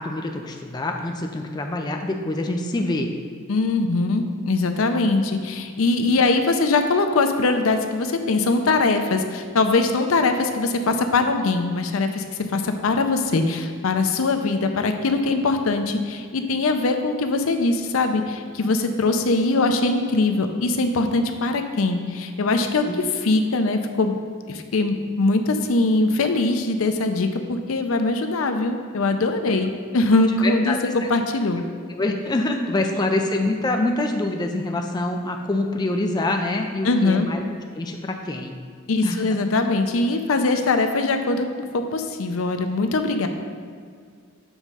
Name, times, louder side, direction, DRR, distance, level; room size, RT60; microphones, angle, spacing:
voice 1, 0.0-3.1 22.9-23.0 30.4-30.8 31.9-37.4 37.7-38.5 39.0-39.2, left 2 dB, 20° left, 3 dB, 0.4 m, -25 dB
voice 2, 3.5-12.2 12.5-22.8 23.2-24.2 24.5-31.6 36.8-37.3 38.9-41.5 41.7-43.3, left 3 dB, 70° left, 6 dB, 0.5 m, -22 dB
7.1 x 3.6 x 5.4 m, 2.1 s
head